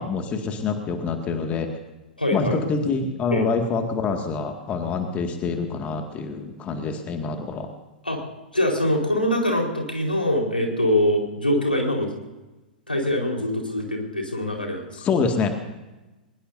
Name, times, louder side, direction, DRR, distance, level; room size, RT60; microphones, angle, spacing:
voice 1, 0.0-1.7 2.3-7.7 15.0-15.6, left 4 dB, 25° left, 5 dB, 2.1 m, -26 dB
voice 2, 2.2-2.6 3.3-3.5 8.0-8.2 8.5-12.1 12.9-15.0, left 1 dB, 90° left, 1 dB, 4.4 m, -23 dB
22.5 x 21.0 x 2.7 m, 1.1 s
figure-of-eight pair, 100°, 5 cm